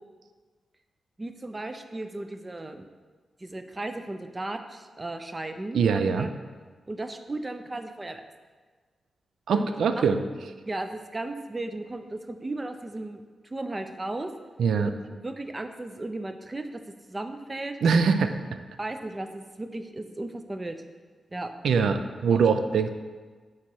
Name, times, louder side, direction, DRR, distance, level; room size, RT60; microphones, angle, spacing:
voice 1, 1.2-2.9 3.4-6.3 6.9-8.2 9.5-9.7 10.0-10.1 10.7-14.3 14.8-16.8 17.1-17.8 18.8-20.8 21.3-21.9 22.3-22.4, right 2 dB, 20° right, 7 dB, 0.4 m, -35 dB
voice 2, 5.7-6.3 9.5-10.2 14.6-14.9 17.8-18.4 21.6-22.9, right 5 dB, 85° right, 8 dB, 0.4 m, -23 dB
8.3 x 2.9 x 4.6 m, 1.4 s
wide cardioid pair, 145°, 0 cm